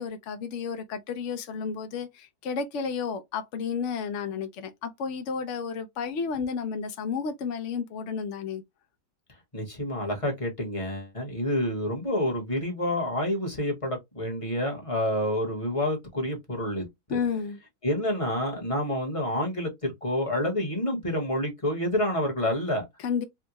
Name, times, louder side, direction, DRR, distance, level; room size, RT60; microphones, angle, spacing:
voice 1, 0.0-8.6 17.1-17.6 23.0-23.2, left 6 dB, 80° left, 0.6 m, -32 dB
voice 2, 9.5-17.2 17.8-22.9, left 1 dB, 25° left, 1.0 m, -28 dB
3.6 x 2.2 x 2.9 m
omnidirectional pair, 1.9 m